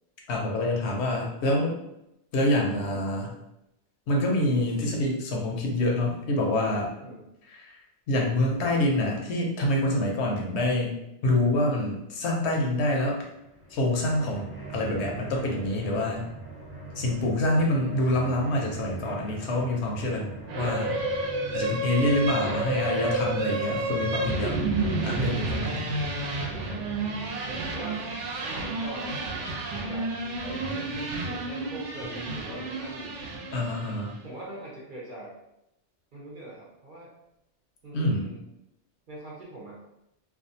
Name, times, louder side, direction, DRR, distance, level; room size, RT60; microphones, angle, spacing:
voice 1, 0.3-1.8 2.3-3.3 4.1-6.9 7.5-7.7 8.1-13.3 13.7-16.3 17.0-20.9 21.5-24.6 25.0-25.9 33.5-34.1 37.9-38.3, left 1 dB, 70° left, -1 dB, 0.8 m, -26 dB
sound 1, 13.3-29.1, right 3 dB, 20° left, 0.3 m, -42 dB
voice 2, 20.4-21.0 23.5-23.7 24.8-24.9 27.5-28.1 28.4-29.2 29.7-33.2 34.2-35.4 36.1-37.1 37.8-38.4 39.1-39.8, right 1 dB, 50° right, -5 dB, 0.7 m, -42 dB
sound 2, 20.5-34.1, right 2 dB, 80° right, 0.9 m, -30 dB
2.5 x 2.2 x 2.6 m, 0.84 s
omnidirectional pair, 1.2 m